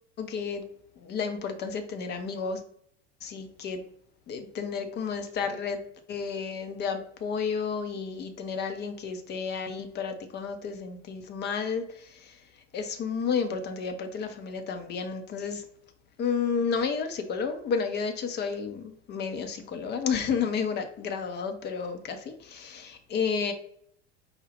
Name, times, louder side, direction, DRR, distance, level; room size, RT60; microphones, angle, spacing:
voice 1, 0.2-0.6 1.0-2.6 3.2-3.8 4.3-5.8 6.1-12.4 12.7-15.6 16.2-23.5, left 6 dB, 30° left, 7 dB, 0.7 m, -31 dB
4.9 x 2.3 x 3.2 m, 0.68 s
figure-of-eight pair, 80°, 37 cm